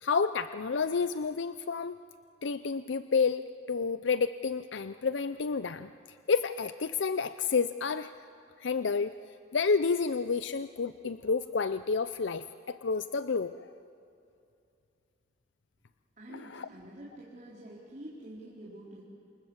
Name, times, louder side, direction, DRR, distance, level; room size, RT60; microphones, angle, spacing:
voice 1, 0.0-2.0 2.4-5.9 6.3-8.1 8.6-9.2 9.5-13.7 16.5-16.7, left 5 dB, 75° left, 12 dB, 0.6 m, -30 dB
voice 2, 16.2-19.0, right 1 dB, 40° right, -5 dB, 4.2 m, -47 dB
28.0 x 27.5 x 7.3 m, 2.6 s
head